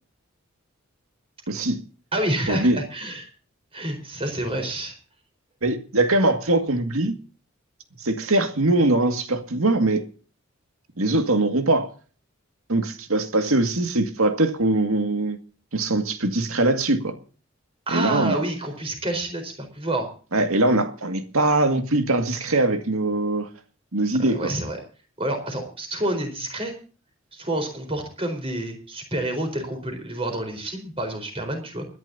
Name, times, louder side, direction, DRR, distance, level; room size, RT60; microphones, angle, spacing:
voice 1, 1.5-1.8 2.5-2.8 5.6-7.1 8.0-10.1 11.0-11.9 12.7-15.4 15.7-17.2 17.9-18.5 20.3-23.5 23.9-24.5, right 2 dB, 85° right, 2.1 m, -22 dB
voice 2, 2.1-3.3 3.7-4.9 17.9-20.1 24.3-24.8 25.2-26.7 27.3-31.9, right 1 dB, 25° right, 4.4 m, -28 dB
29.5 x 11.0 x 2.8 m
head